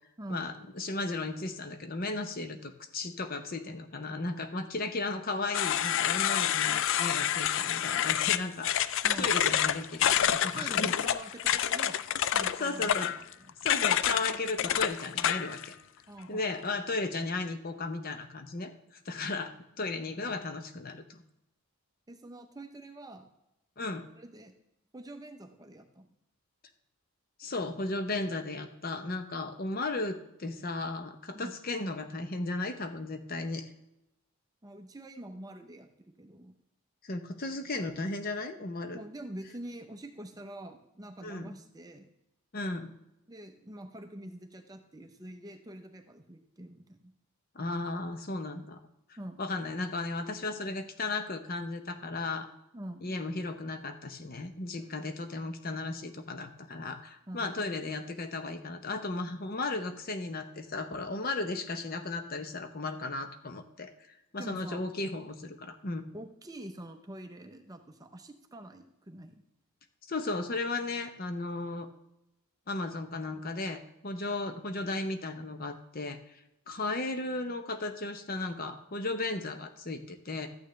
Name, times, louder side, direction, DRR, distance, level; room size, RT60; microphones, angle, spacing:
voice 1, 0.3-8.9 9.2-10.9 12.6-13.1 13.6-15.7 16.3-21.2 23.8-24.0 27.4-33.6 37.0-39.0 41.2-41.6 42.5-42.9 47.5-48.8 49.4-52.5 53.0-63.9 64.3-66.0 70.0-71.9 72.7-76.4 76.7-80.5, left 2 dB, 40° left, 8 dB, 0.8 m, -35 dB
sound 1, 5.5-15.7, left 10 dB, 55° left, 0.3 m, -28 dB
voice 2, 9.0-9.3 10.5-12.9 13.4-13.7 16.1-16.5 22.1-23.3 24.1-24.5 24.9-26.2 31.3-31.6 34.6-36.5 38.9-42.0 43.3-47.1 49.2-49.4 52.7-53.2 54.8-54.9 57.3-57.6 64.4-64.8 66.1-69.4, right 1 dB, 15° right, 6 dB, 0.6 m, -45 dB
13.0 x 9.0 x 3.2 m, 0.86 s
head